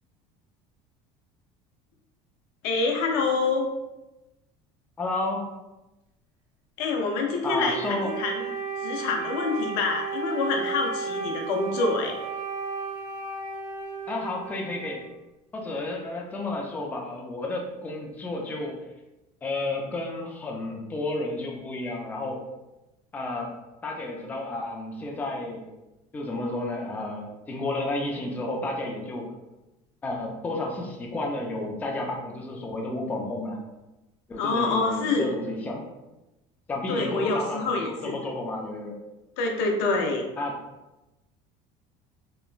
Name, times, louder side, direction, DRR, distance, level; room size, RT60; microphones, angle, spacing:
voice 1, 2.6-3.7 6.8-8.5 8.8-12.2 34.4-35.3 36.9-38.1 39.4-40.2, left 3 dB, 85° left, 2 dB, 0.5 m, -26 dB
voice 2, 5.0-5.4 7.4-8.1 14.1-15.0 15.5-18.8 19.4-22.4 23.1-23.5 23.8-25.7 26.1-29.3 30.0-33.6 34.3-35.8 36.7-39.0 40.4-40.6, left 2 dB, 10° left, 0 dB, 0.3 m, -31 dB
Wind instrument woodwind instrument, 7.5-15.2, right 5 dB, 70° right, 0.5 m, -34 dB
2.9 x 2.2 x 2.4 m, 1.0 s
cardioid pair, 145°, 14 cm